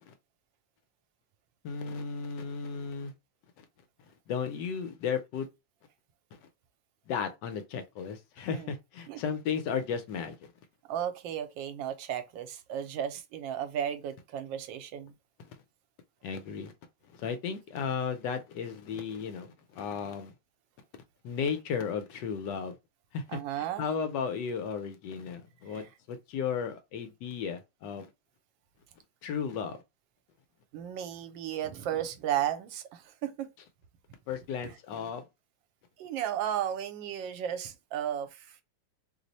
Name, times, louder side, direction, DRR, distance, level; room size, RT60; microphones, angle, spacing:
voice 1, 1.6-3.1 4.3-5.5 7.1-10.5 16.2-16.7 17.1-20.3 21.2-22.8 23.1-28.1 29.2-29.8 34.3-35.2, left 6 dB, 75° left, 1.2 m, -34 dB
voice 2, 10.9-15.1 23.3-23.8 25.7-25.8 30.7-33.5 34.6-34.7 36.0-38.6, right 10 dB, 85° right, 1.3 m, -34 dB
3.2 x 2.0 x 3.9 m
omnidirectional pair, 2.0 m